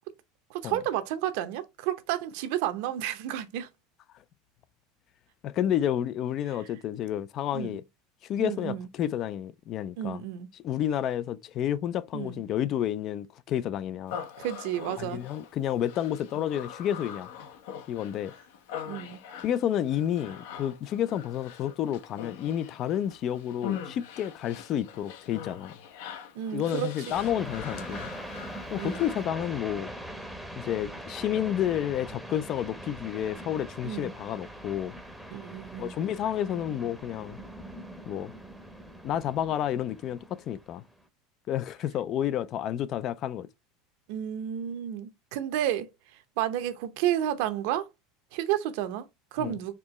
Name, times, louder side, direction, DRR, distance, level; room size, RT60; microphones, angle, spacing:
voice 1, 0.5-3.7 6.5-6.7 7.5-7.8 8.4-8.9 10.0-10.5 12.1-12.5 14.4-15.2 18.9-19.2 26.3-27.1 28.8-29.1 33.8-34.1 35.3-35.9 44.1-47.9 48.3-49.7, right 11 dB, 65° right, 0.7 m, -31 dB
voice 2, 5.4-7.8 8.3-10.2 10.6-14.2 15.0-17.3 17.9-18.3 19.4-25.7 26.5-28.1 28.7-29.9 30.6-34.9 35.8-37.4 38.0-38.3 39.0-40.8 41.5-43.5 49.4-49.6, left 10 dB, 40° left, 0.3 m, -30 dB
Human voice, 14.1-29.3, left 8 dB, 75° left, 0.8 m, -43 dB
sound 1, 27.1-41.0, right 1 dB, ahead, 0.7 m, -42 dB
4.4 x 3.0 x 3.0 m
supercardioid pair, 145°, 0 cm